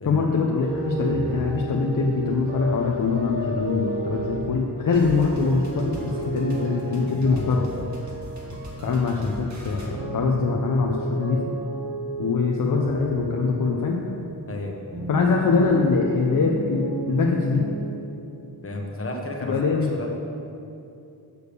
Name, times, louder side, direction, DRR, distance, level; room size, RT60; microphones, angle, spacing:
voice 1, 0.1-7.7 8.8-11.4 12.2-14.0 15.1-17.6 19.5-20.0, left 4 dB, 50° left, -1 dB, 0.8 m, -23 dB
sound 1, 0.6-9.5 9.8-14.4 14.9-17.9, right 2 dB, 75° right, 2.1 m, -32 dB
sound 2, 4.9-9.9, equal, 40° right, 1.7 m, -39 dB
voice 2, 14.5-14.8 18.6-19.7 20.0-20.1, left 1 dB, 35° left, 1 dB, 1.3 m, -32 dB
6.9 x 6.4 x 6.9 m, 2.7 s
wide cardioid pair, 100°, 41 cm